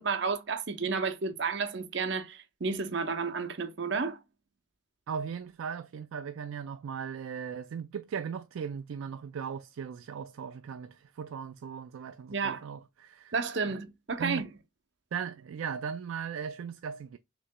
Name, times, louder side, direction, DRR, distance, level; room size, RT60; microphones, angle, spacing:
voice 1, 0.0-4.2 12.3-12.6 13.3-14.5, right 4 dB, 55° right, 0.7 m, -31 dB
voice 2, 5.1-13.3 13.7-13.8 14.2-14.4 15.1-17.2, right 7 dB, 85° right, 0.3 m, -38 dB
6.4 x 3.0 x 2.2 m
head